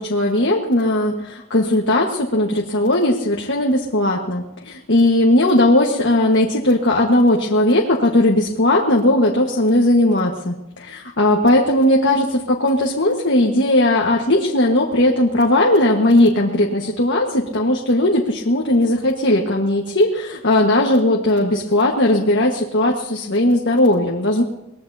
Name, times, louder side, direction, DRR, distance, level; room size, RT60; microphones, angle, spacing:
voice 1, 0.0-24.4, left 1 dB, 50° left, 0 dB, 1.6 m, -17 dB
23.5 x 20.0 x 2.8 m, 0.95 s
head